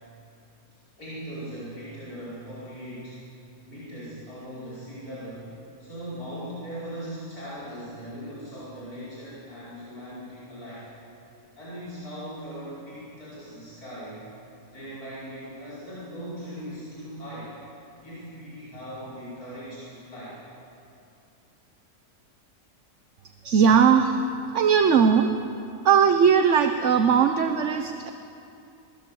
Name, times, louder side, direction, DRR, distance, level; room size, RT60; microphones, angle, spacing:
voice 1, 1.0-3.2 3.7-5.5 5.8-10.9 11.6-14.3 14.7-17.5 18.0-20.4, equal, 85° left, -9 dB, 6.1 m, -39 dB
voice 2, 23.4-24.2 24.5-25.3 25.8-28.1, right 7 dB, 55° right, 7 dB, 1.2 m, -19 dB
23.5 x 19.0 x 7.9 m, 2.7 s
omnidirectional pair, 1.5 m